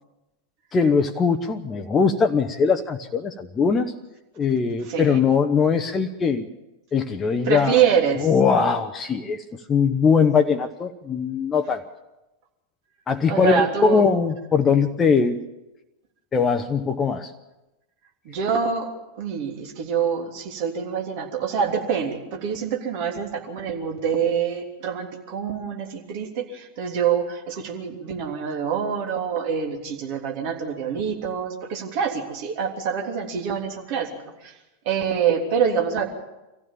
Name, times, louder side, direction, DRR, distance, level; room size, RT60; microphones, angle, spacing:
voice 1, 0.7-3.9 4.4-6.5 6.9-7.8 8.2-11.8 13.1-15.4 16.3-17.3, left 5 dB, 20° left, 6 dB, 0.9 m, -21 dB
voice 2, 4.9-5.2 7.4-8.3 13.3-14.0 18.2-18.9 19.2-34.5 34.8-36.0, right 7 dB, 45° right, 2 dB, 3.2 m, -25 dB
24.0 x 15.0 x 7.2 m, 1.0 s
figure-of-eight pair, 90°, 0 cm